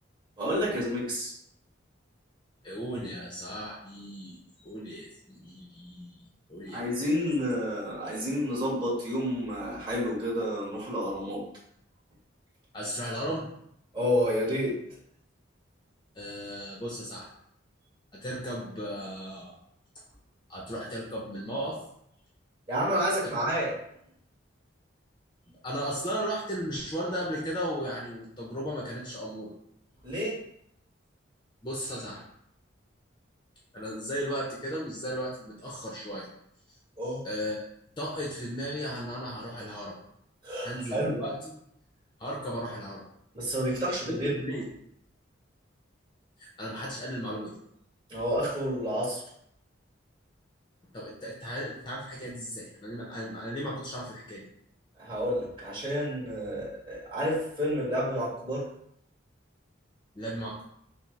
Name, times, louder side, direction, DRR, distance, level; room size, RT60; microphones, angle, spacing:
voice 1, 0.4-1.3 6.7-11.4 13.9-14.7 22.7-23.7 30.0-30.4 37.0-37.2 40.4-41.2 43.3-44.3 48.1-49.2 55.0-58.6, equal, 25° right, -8 dB, 1.6 m, -29 dB
voice 2, 2.6-4.4 4.6-6.2 6.5-7.2 12.7-13.5 16.1-17.3 18.1-19.5 20.5-21.8 25.6-29.5 31.6-32.2 33.7-36.3 37.2-37.7 38.0-40.0 40.6-41.4 42.2-43.0 44.1-44.7 46.4-47.5 50.9-54.5 60.1-60.6, equal, 25° left, -3 dB, 0.6 m, -35 dB
5.8 x 2.1 x 3.1 m, 0.72 s
head